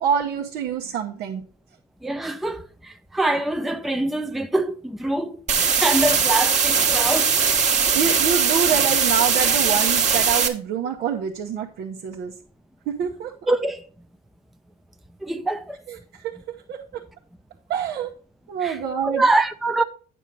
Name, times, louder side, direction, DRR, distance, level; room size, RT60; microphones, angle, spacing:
voice 1, 0.0-1.4 7.9-12.3 12.9-13.5 15.9-16.3 16.7-17.0 17.7-18.2 18.5-19.3, right 7 dB, 75° right, 1.0 m, -26 dB
voice 2, 2.0-7.3 8.1-8.2 13.5-13.8 15.2-15.8 18.6-18.8 19.0-19.8, right 2 dB, ahead, 0.5 m, -24 dB
sound 1, 5.5-10.5, right 6 dB, 40° right, 1.3 m, -20 dB
9.0 x 6.2 x 4.0 m
cardioid pair, 110°, 17 cm